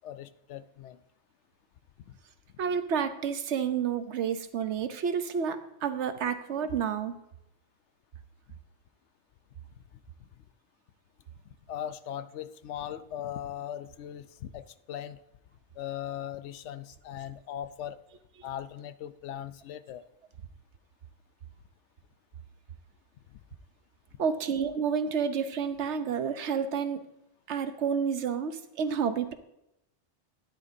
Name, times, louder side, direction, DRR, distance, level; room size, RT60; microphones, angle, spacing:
voice 1, 0.0-1.0 2.1-2.2 11.7-15.2 15.8-18.0 18.4-20.0 23.3-23.4, left 10 dB, 85° left, 13 dB, 0.9 m, -39 dB
voice 2, 2.6-7.1 24.2-27.0 27.5-29.3, right 7 dB, 80° right, 10 dB, 1.1 m, -30 dB
13.0 x 10.5 x 2.7 m, 0.83 s
omnidirectional pair, 1.2 m